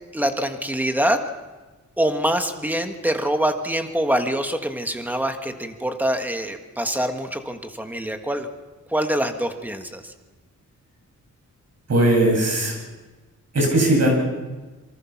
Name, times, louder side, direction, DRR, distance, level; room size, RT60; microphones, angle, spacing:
voice 1, 0.1-1.2 2.0-8.5 8.9-10.1, right 1 dB, 5° right, 5 dB, 1.6 m, -24 dB
voice 2, 11.9-12.7 13.5-14.2, right 1 dB, 55° right, 0 dB, 7.6 m, -18 dB
27.0 x 24.0 x 6.0 m, 1.2 s
wide cardioid pair, 180°, 30 cm